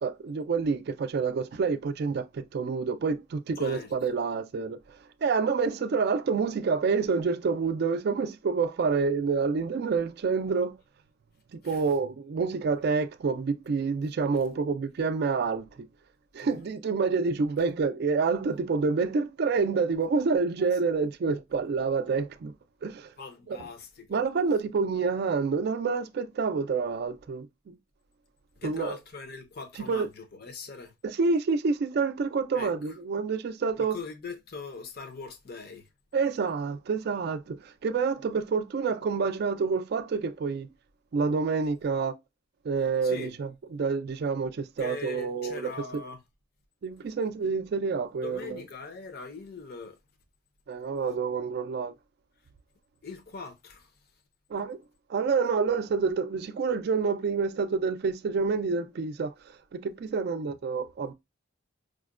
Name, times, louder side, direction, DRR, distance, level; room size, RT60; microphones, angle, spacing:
voice 1, 0.0-10.8 11.6-15.9 16.3-22.5 22.8-23.1 23.5-23.6 24.1-27.8 28.6-29.0 29.8-30.1 31.0-34.0 36.1-40.7 41.1-42.2 42.6-45.7 46.8-48.6 50.7-51.9 54.5-54.8 55.1-61.1, right 5 dB, 55° right, 0.3 m, -28 dB
voice 2, 3.6-3.9 11.6-11.8 16.4-16.7 23.2-24.2 28.6-30.9 32.5-32.7 33.8-35.9 43.0-43.3 44.8-46.2 48.2-50.0 53.0-53.9, left 4 dB, 50° left, 0.6 m, -41 dB
4.8 x 2.1 x 2.4 m
head